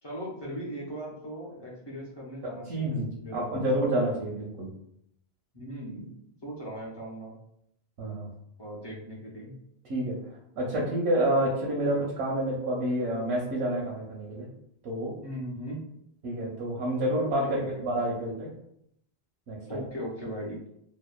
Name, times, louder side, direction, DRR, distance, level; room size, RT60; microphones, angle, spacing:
voice 1, 0.0-3.6 5.5-6.1 6.4-7.3 8.6-9.6 15.2-15.8 17.4-17.7 19.6-20.6, equal, 35° left, -6 dB, 0.5 m, -38 dB
voice 2, 2.4-4.7 8.0-8.3 9.9-10.2 10.6-14.5 14.8-15.1 16.2-18.5 19.5-19.8, right 1 dB, 75° right, -4 dB, 0.9 m, -28 dB
2.7 x 2.1 x 2.2 m, 0.74 s
omnidirectional pair, 1.1 m